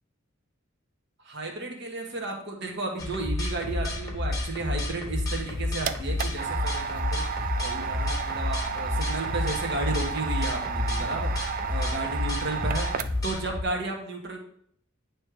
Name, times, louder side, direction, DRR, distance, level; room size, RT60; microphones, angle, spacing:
voice 1, 1.2-11.3 11.7-14.4, right 2 dB, 55° right, 2 dB, 1.4 m, -33 dB
sound 1, 3.0-13.6, left 2 dB, 15° left, 1.2 m, -30 dB
sound 2, 5.3-13.4, right 6 dB, 40° right, 0.3 m, -33 dB
9.5 x 3.2 x 4.9 m, 0.64 s
head